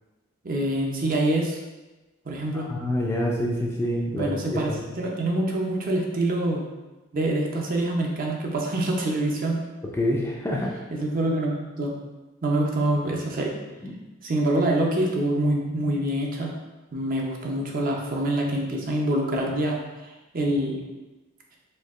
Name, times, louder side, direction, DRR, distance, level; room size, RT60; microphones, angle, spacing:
voice 1, 0.4-1.6 2.3-2.7 4.1-4.7 5.0-6.7 7.1-9.6 10.9-11.9 12.4-13.5 14.2-16.5 16.9-19.8 20.0-20.8, right 1 dB, 40° right, 0 dB, 0.5 m, -25 dB
voice 2, 2.5-5.0 9.9-10.7 13.8-13.9, left 1 dB, 10° left, -3 dB, 0.4 m, -27 dB
4.4 x 2.7 x 2.4 m, 1.1 s
head